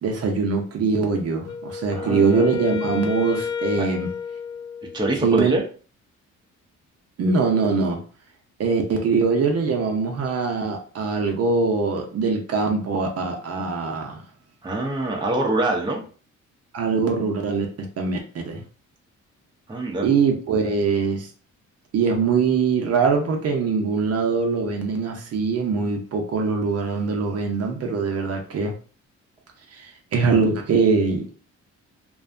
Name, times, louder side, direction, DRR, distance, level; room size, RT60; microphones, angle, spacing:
voice 1, 0.0-4.1 5.2-5.6 7.2-8.0 8.6-14.2 16.7-18.2 18.5-18.6 20.0-21.3 21.9-28.7 29.7-31.3, right 4 dB, 55° right, 2 dB, 0.7 m, -22 dB
Wind instrument woodwind instrument, 1.4-5.3, left 6 dB, 75° left, 0.4 m, -31 dB
voice 2, 1.9-2.4 3.8-3.9 4.9-5.6 14.6-16.0 19.7-20.1, right 1 dB, 15° right, 0 dB, 0.6 m, -24 dB
2.5 x 2.2 x 2.5 m, 0.39 s
cardioid pair, 90°, 30 cm